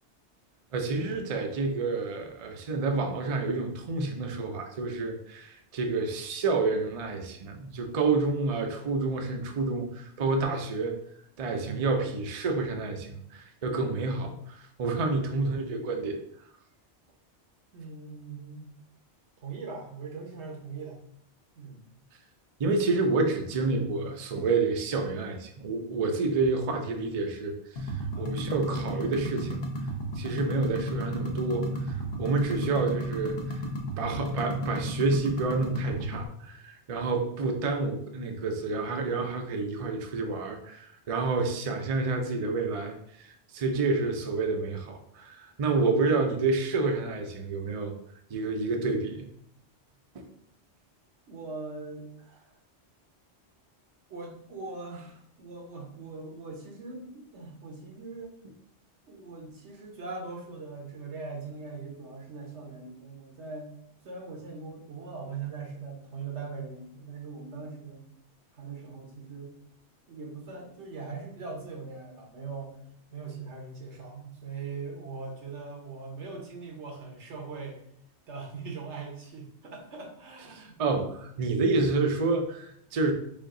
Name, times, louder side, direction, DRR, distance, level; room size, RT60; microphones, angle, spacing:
voice 1, 0.7-11.0 11.4-16.2 22.6-29.6 30.2-33.6 34.0-47.9 48.3-49.3 50.1-50.3 80.5-83.1, right 3 dB, 45° right, 4 dB, 0.5 m, -29 dB
voice 2, 17.7-18.7 19.4-21.0 21.5-21.8 28.1-28.3 51.3-52.5 54.1-58.3 59.1-63.7 64.0-68.1 68.5-69.5 70.1-72.8 73.1-77.8 78.3-80.8, right 4 dB, 85° right, 0 dB, 1.3 m, -41 dB
sound 1, 27.8-36.3, equal, 65° left, 1.0 m, -33 dB
5.1 x 2.5 x 3.7 m, 0.70 s
omnidirectional pair, 1.1 m